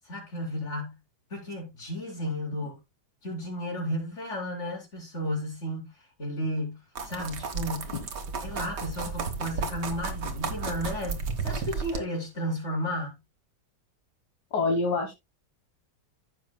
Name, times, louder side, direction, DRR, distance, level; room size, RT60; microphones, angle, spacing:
voice 1, 0.0-1.0 1.3-2.8 3.2-5.9 6.2-7.9 8.4-13.2, equal, 45° left, 4.7 m, -33 dB
sound 1, 7.0-12.0, right 5 dB, 85° right, 2.0 m, -33 dB
voice 2, 14.5-15.1, left 3 dB, 70° left, 2.0 m, -26 dB
15.5 x 6.4 x 2.2 m
omnidirectional pair, 1.8 m